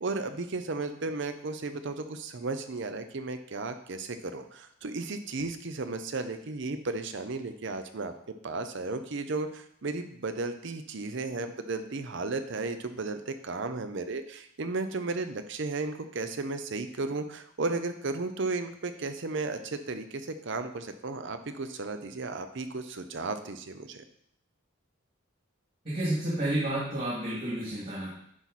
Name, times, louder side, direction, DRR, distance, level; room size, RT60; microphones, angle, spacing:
voice 1, 0.0-8.1 8.4-24.0, right 3 dB, 55° right, 9 dB, 0.6 m, -34 dB
voice 2, 25.8-28.1, right 1 dB, 40° right, -8 dB, 2.5 m, -30 dB
10.5 x 4.1 x 4.2 m, 0.69 s
head